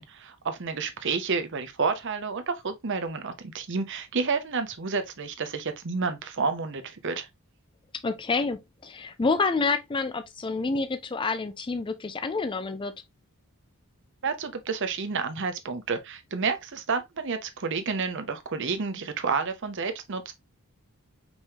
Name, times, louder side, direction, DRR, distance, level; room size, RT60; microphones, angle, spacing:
voice 1, 0.0-7.3 14.2-20.3, right 4 dB, 55° right, 0.8 m, -30 dB
voice 2, 8.0-12.9, left 4 dB, 20° left, 0.4 m, -28 dB
5.3 x 3.1 x 2.7 m
head